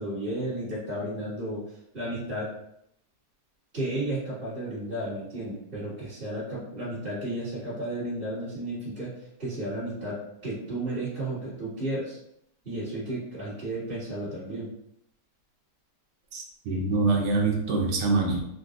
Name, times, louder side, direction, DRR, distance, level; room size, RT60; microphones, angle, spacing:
voice 1, 0.0-2.5 3.7-9.1 9.4-10.2 10.4-12.2 12.6-14.7, right 1 dB, 30° right, -15 dB, 1.5 m, -33 dB
voice 2, 16.3-18.4, right 3 dB, 75° right, 0 dB, 1.3 m, -25 dB
3.9 x 2.2 x 2.5 m, 0.76 s
omnidirectional pair, 1.9 m